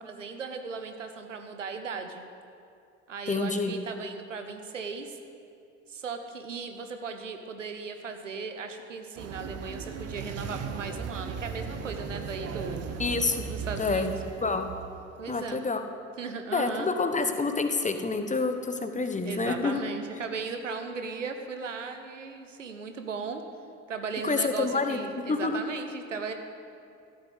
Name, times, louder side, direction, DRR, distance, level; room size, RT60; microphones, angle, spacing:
voice 1, 0.0-2.2 3.1-5.2 5.9-12.9 13.5-14.1 15.2-15.6 16.2-16.9 19.2-23.4 23.9-26.3, right 5 dB, 90° right, 6 dB, 0.8 m, -37 dB
voice 2, 3.3-3.7 13.0-13.4 13.8-14.1 14.4-14.7 15.3-15.8 16.5-19.8 20.1-20.2 24.2-25.0 25.3-25.6, left 3 dB, 20° left, 7 dB, 1.1 m, -28 dB
sound 1, 9.2-15.2, right 6 dB, 40° right, 1.0 m, -37 dB
13.0 x 6.6 x 8.2 m, 2.4 s
figure-of-eight pair, 55°, 36 cm